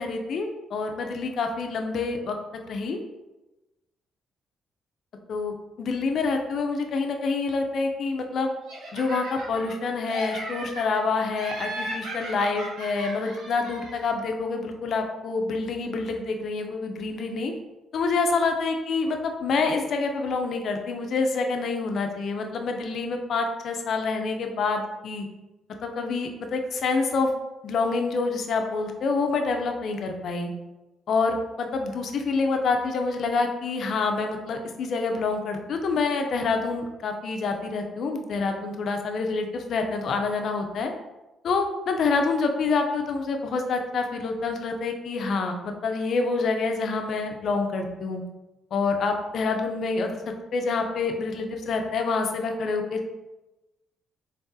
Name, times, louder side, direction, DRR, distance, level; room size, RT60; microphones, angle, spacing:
voice 1, 0.0-2.4 2.7-3.0 5.3-8.5 8.9-17.5 17.9-25.3 25.8-27.3 27.6-30.5 31.1-40.9 41.4-48.2 48.7-53.1, left 4 dB, 65° left, 4 dB, 0.6 m, -27 dB
Laughter, 8.7-9.8 10.1-11.0 11.4-14.1, right 1 dB, 85° right, 1.0 m, -36 dB
3.9 x 3.6 x 2.7 m, 1.1 s
cardioid pair, 90°, 0 cm